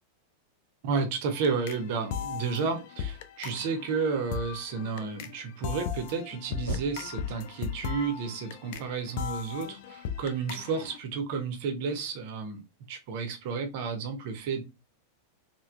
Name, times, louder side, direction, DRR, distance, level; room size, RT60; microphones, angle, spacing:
voice 1, 0.8-12.6 12.9-14.6, right 5 dB, 50° right, 6 dB, 0.7 m, -32 dB
sound 1, 1.3-11.0, left 8 dB, 50° left, 0.3 m, -38 dB
sound 2, 6.3-10.2 10.7-11.6, equal, 80° left, 0.9 m, -41 dB
3.2 x 2.2 x 2.5 m, 0.25 s
figure-of-eight pair, 90°, 0 cm